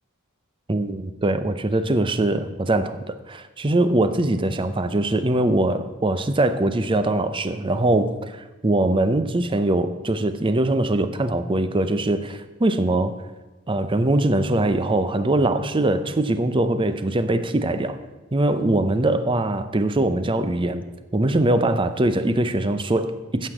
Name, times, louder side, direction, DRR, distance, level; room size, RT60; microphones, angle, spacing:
voice 1, 0.7-13.1 13.7-18.0 18.3-20.8 21.1-23.5, right 2 dB, 25° right, 11 dB, 0.6 m, -22 dB
9.6 x 6.5 x 7.8 m, 1.2 s
head